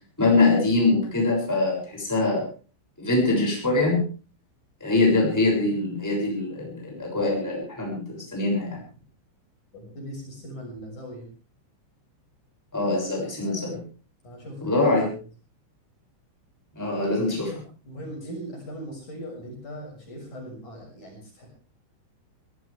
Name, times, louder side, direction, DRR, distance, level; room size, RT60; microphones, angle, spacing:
voice 1, 0.2-2.5 3.0-4.0 4.8-8.8 12.7-13.8 14.6-15.1 16.7-17.5, left 2 dB, 5° left, -2 dB, 6.5 m, -23 dB
voice 2, 9.7-11.3 14.2-15.0 17.8-21.5, equal, 40° left, -1 dB, 7.6 m, -39 dB
23.5 x 16.5 x 3.5 m, 0.37 s
omnidirectional pair, 5.5 m